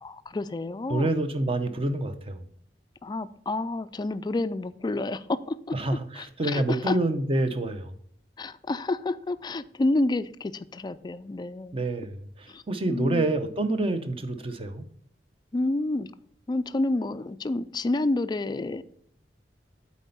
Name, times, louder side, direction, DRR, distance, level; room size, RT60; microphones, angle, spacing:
voice 1, 0.0-1.1 3.0-5.7 6.2-7.0 8.4-11.8 12.5-12.6 12.9-13.3 15.5-16.1 16.5-18.8, left 2 dB, 25° left, 14 dB, 0.3 m, -29 dB
voice 2, 0.9-2.5 5.7-7.9 11.7-14.8, right 2 dB, 35° right, 9 dB, 0.7 m, -27 dB
8.2 x 4.2 x 5.4 m, 0.63 s
head